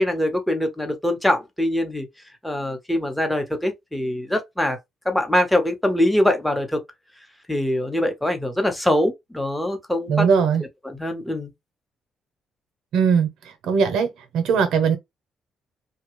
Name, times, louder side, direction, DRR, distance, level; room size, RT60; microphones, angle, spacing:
voice 1, 0.0-2.1 2.4-4.8 5.0-6.8 7.5-10.3 10.9-11.5, left 1 dB, 5° left, 1.0 m, -23 dB
voice 2, 10.1-10.6 12.9-13.3 13.6-15.0, right 6 dB, 80° right, 0.8 m, -19 dB
2.9 x 2.3 x 3.0 m
cardioid pair, 90°, 0 cm